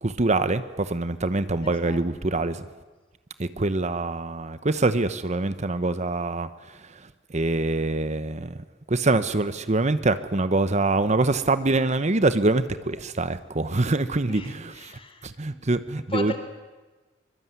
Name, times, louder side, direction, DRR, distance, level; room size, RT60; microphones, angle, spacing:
voice 1, 0.0-2.7 3.4-8.6 8.9-14.5 15.2-16.4, right 2 dB, 40° right, 12 dB, 1.0 m, -25 dB
voice 2, 1.6-2.4 14.3-15.6 16.1-16.4, left 2 dB, 30° left, 9 dB, 3.4 m, -37 dB
24.0 x 22.5 x 9.5 m, 1.2 s
head